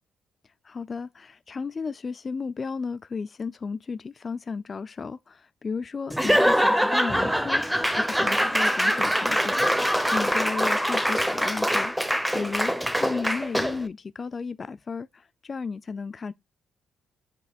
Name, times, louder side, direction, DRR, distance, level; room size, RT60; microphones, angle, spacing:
voice 1, 0.6-9.8 10.1-11.9 12.3-12.7 13.0-16.3, left 5 dB, 35° left, 0.4 m, -34 dB
Laughter / Applause / Crowd, 6.1-13.9, equal, 5° right, 0.9 m, -24 dB
7.8 x 6.0 x 2.4 m
cardioid pair, 90°, 0 cm